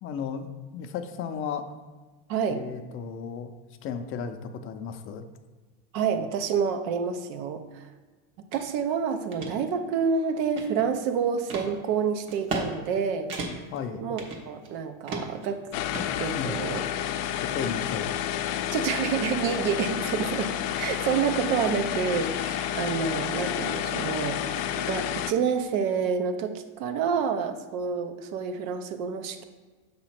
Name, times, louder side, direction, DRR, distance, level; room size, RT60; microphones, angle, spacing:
voice 1, 0.0-1.7 2.5-3.5 3.8-5.3 13.7-14.0 16.3-16.6 17.4-18.2, left 6 dB, 35° left, 8 dB, 0.4 m, -34 dB
voice 2, 2.3-2.6 5.9-7.9 8.5-13.3 14.0-15.6 16.2-16.8 18.7-20.5 20.8-29.4, right 6 dB, 75° right, 8 dB, 0.7 m, -28 dB
sound 1, 8.5-8.6 9.1-9.5 10.1-11.0 11.5-11.7 12.3-12.7 12.9-13.0 13.3-13.8 14.2-14.7 15.1-15.5 15.9-16.7, right 3 dB, 55° right, 1.2 m, -35 dB
sound 2, 15.7-25.3, left 11 dB, 85° left, 0.5 m, -30 dB
6.4 x 3.0 x 5.8 m, 1.3 s
cardioid pair, 145°, 40 cm